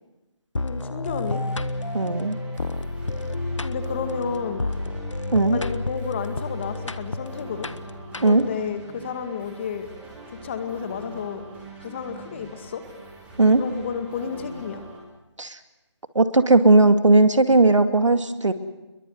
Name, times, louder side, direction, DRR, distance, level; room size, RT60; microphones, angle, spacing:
sound 1, 0.6-8.7, left 2 dB, 85° left, 1.4 m, -31 dB
voice 1, 0.6-1.4 3.6-4.7 5.5-7.7 8.2-9.9 10.3-11.4 11.8-12.8 13.6-14.8, left 6 dB, 25° left, 8 dB, 1.9 m, -31 dB
sound 2, 1.3-15.0, right 2 dB, 10° right, 5.0 m, -43 dB
voice 2, 1.9-2.4 5.3-5.6 8.2-8.4 13.4-13.6 15.4-15.6 16.1-18.5, right 2 dB, 85° right, 9 dB, 2.3 m, -17 dB
27.5 x 22.5 x 7.9 m, 1.1 s
figure-of-eight pair, 160°, 15 cm